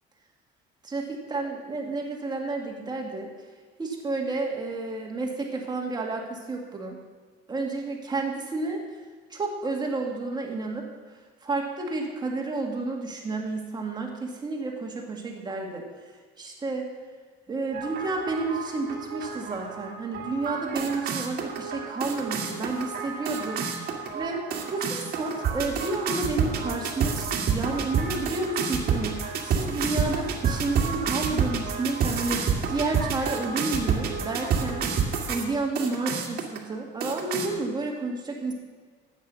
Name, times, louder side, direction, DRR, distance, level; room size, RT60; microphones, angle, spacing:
voice 1, 0.8-3.3 3.8-7.0 7.5-8.8 9.3-10.9 11.4-15.8 16.4-16.9 17.5-23.7 24.1-34.9 35.3-38.5, right 3 dB, 20° right, 0 dB, 2.0 m, -31 dB
sound 1, 17.7-35.4 35.8-36.6 37.0-37.5, right 6 dB, 55° right, 2.0 m, -29 dB
13.0 x 8.8 x 6.2 m, 1.4 s
cardioid pair, 145°, 18 cm